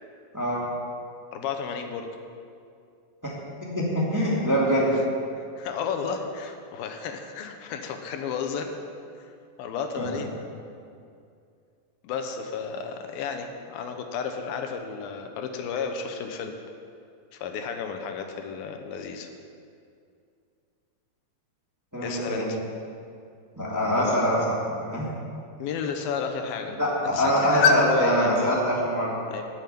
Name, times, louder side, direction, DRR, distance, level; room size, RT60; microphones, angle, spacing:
voice 1, 1.3-2.1 5.4-8.7 9.2-9.3 9.6-10.3 12.0-16.6 17.3-19.3 22.0-22.6 24.0-24.2 25.6-26.8 27.0-28.6 29.3-29.4, left 5 dB, 85° left, 5 dB, 2.8 m, -31 dB
voice 2, 3.6-4.9 10.0-10.1 21.9-22.5 23.6-24.4 24.8-25.1 26.8-29.1, equal, 5° right, -6 dB, 2.0 m, -24 dB
12.5 x 7.2 x 9.3 m, 2.4 s
omnidirectional pair, 4.1 m